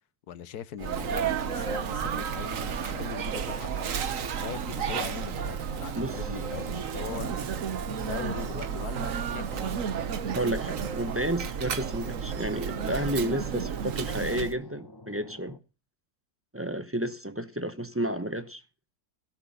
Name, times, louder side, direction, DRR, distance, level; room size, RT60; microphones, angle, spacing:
voice 1, 0.3-4.0 4.4-7.5 8.1-9.7, left 9 dB, 85° left, 1.4 m, -40 dB
Sneeze, 0.8-14.6, right 7 dB, 60° right, 1.3 m, -32 dB
sound 1, 1.2-15.6, left 2 dB, 20° left, 1.0 m, -49 dB
voice 2, 10.4-15.6 16.5-18.6, right 1 dB, 10° right, 0.6 m, -31 dB
16.5 x 6.0 x 6.9 m
omnidirectional pair, 1.6 m